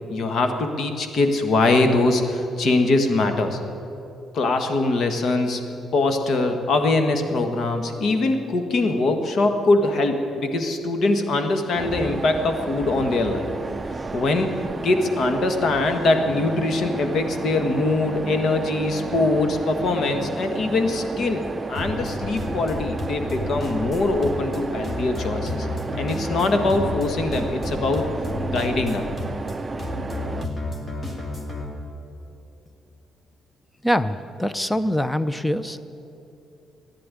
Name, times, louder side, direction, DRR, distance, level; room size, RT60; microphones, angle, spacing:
voice 1, 0.1-3.6 4.3-5.6 5.9-13.5 14.1-14.5 14.8-21.4 21.7-25.7 26.0-28.1 28.4-29.1, left 2 dB, 60° left, 6 dB, 1.6 m, -22 dB
sound 1, 11.7-30.5, right 3 dB, 25° right, 0.5 m, -32 dB
sound 2, 21.8-31.6, left 1 dB, 35° left, 2.7 m, -31 dB
voice 2, 33.8-35.8, equal, 10° left, 13 dB, 0.7 m, -24 dB
14.0 x 10.0 x 9.7 m, 2.8 s
cardioid pair, 90°, 0 cm